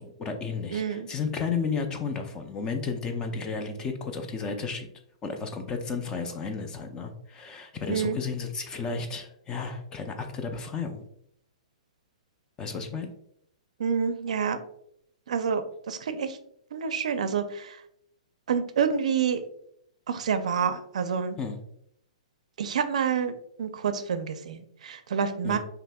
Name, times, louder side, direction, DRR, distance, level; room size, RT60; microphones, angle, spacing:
voice 1, 0.0-4.9 5.2-11.0 12.6-13.1 21.4-21.6 25.4-25.6, left 5 dB, 20° left, 5 dB, 0.5 m, -33 dB
voice 2, 0.7-1.1 7.9-8.2 13.8-14.6 15.3-16.4 16.7-17.8 18.5-19.4 20.1-21.4 22.6-23.3 23.6-25.6, right 6 dB, 70° right, 10 dB, 0.4 m, -28 dB
5.1 x 2.9 x 2.2 m, 0.72 s
hypercardioid pair, 135°, 4 cm